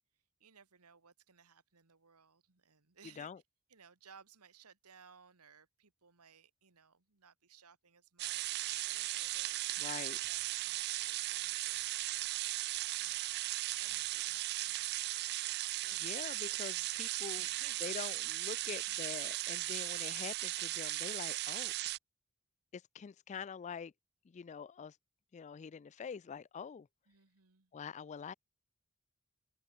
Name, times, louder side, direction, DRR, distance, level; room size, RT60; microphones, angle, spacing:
voice 1, 0.1-3.3 3.7-13.3 13.5-15.4 15.8-16.6 17.1-18.1 27.1-27.7, right 7 dB, 90° right, 1.7 m, -62 dB
sound 1, 8.2-22.0, right 17 dB, 45° right, 0.3 m, -37 dB
voice 2, 9.8-10.2 16.0-17.4 17.8-21.7 22.7-23.9 24.2-25.0 25.3-26.9 27.7-28.3, left 6 dB, 30° left, 0.3 m, -45 dB
head